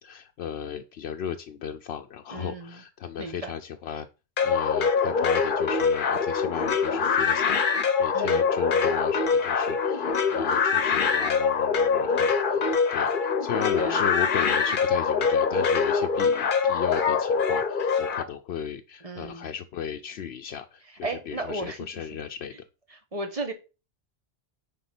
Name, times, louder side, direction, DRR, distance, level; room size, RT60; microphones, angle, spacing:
voice 1, 0.0-4.1 4.4-12.6 12.9-22.5, left 8 dB, 80° left, 0.9 m, -35 dB
voice 2, 2.3-2.8 3.2-3.6 8.1-8.5 13.8-14.1 19.0-19.5 21.0-22.1 22.5-22.6 22.9-23.5, right 2 dB, 35° right, 1.4 m, -35 dB
sound 1, 4.4-18.2, left 5 dB, 55° left, 1.0 m, -24 dB
9.5 x 3.6 x 5.9 m
omnidirectional pair, 1.1 m